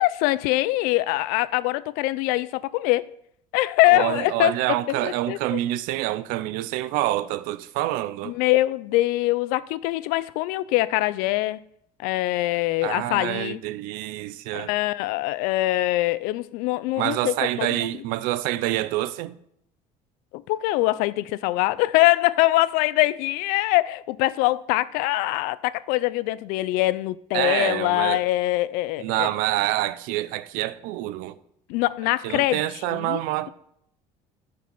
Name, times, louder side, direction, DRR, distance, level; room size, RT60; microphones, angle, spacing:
voice 1, 0.0-3.1 3.5-4.5 4.9-5.6 8.3-11.6 12.0-13.6 14.5-17.9 20.3-29.3 31.7-32.6 32.9-33.2, left 18 dB, 80° left, 0.5 m, -23 dB
voice 2, 3.9-8.3 12.8-14.7 17.0-19.4 27.3-28.2 29.0-31.4 32.2-33.5, right 15 dB, 80° right, 0.6 m, -27 dB
14.0 x 5.3 x 5.5 m
cardioid pair, 175°, 14 cm